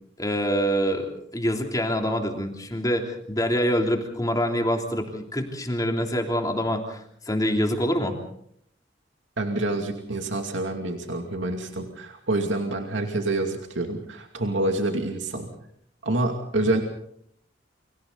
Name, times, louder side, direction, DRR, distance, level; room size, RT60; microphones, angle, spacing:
voice 1, 0.2-8.2, equal, 20° left, 2 dB, 3.2 m, -25 dB
voice 2, 9.4-15.5 16.0-16.8, right 2 dB, 80° right, 4 dB, 2.5 m, -27 dB
29.5 x 26.0 x 4.0 m, 0.70 s
head